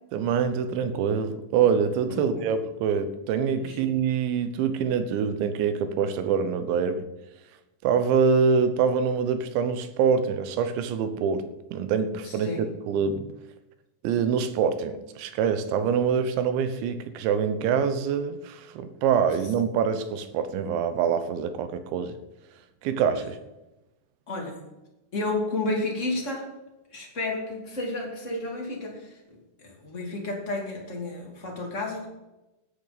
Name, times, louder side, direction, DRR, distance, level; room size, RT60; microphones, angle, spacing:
voice 1, 0.1-7.1 7.8-13.3 14.0-22.2 22.8-23.4, right 6 dB, 80° right, 10 dB, 3.2 m, -25 dB
voice 2, 2.1-2.5 3.6-3.8 12.2-12.6 23.2-23.3 24.3-24.6 25.1-26.5 26.9-29.2 29.6-32.1, left 2 dB, 20° left, -1 dB, 2.0 m, -31 dB
17.5 x 10.5 x 4.1 m, 0.99 s
omnidirectional pair, 5.4 m